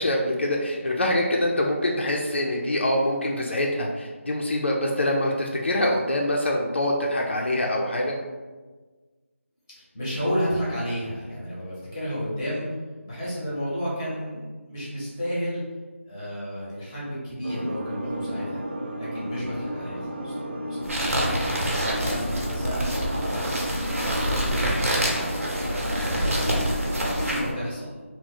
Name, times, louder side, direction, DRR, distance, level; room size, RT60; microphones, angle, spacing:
voice 1, 0.0-8.1, left 1 dB, 55° left, -1 dB, 0.4 m, -25 dB
voice 2, 9.9-12.7 13.0-15.6 16.0-18.6 19.0-22.8 23.1-24.1 24.5-26.5 26.8-28.0, equal, 10° left, -8 dB, 0.7 m, -32 dB
sound 1, 17.4-27.5, equal, 45° right, 0.4 m, -33 dB
sound 2, 20.8-27.5, equal, 90° right, 0.9 m, -26 dB
2.9 x 2.0 x 3.9 m, 1.3 s
figure-of-eight pair, 175°, 7 cm